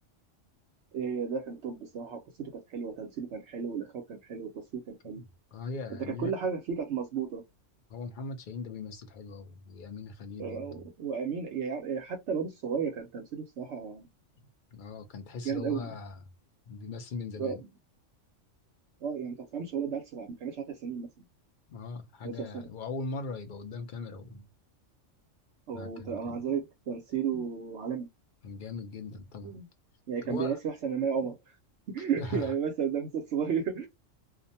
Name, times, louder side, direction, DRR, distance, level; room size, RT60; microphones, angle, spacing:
voice 1, 0.9-5.2 6.2-7.4 10.4-14.1 15.4-15.9 17.4-17.6 19.0-21.1 22.2-22.7 25.7-28.1 29.4-29.6 30.1-31.4 31.9-33.9, right 6 dB, 65° right, 0.9 m, -33 dB
voice 2, 5.5-6.4 7.9-10.8 14.7-16.2 16.7-17.6 21.7-24.5 25.7-26.6 27.3-27.5 28.4-29.6 30.3-30.6 31.2-31.3 32.2-32.5, left 4 dB, 60° left, 0.5 m, -40 dB
2.4 x 2.1 x 2.7 m
omnidirectional pair, 1.3 m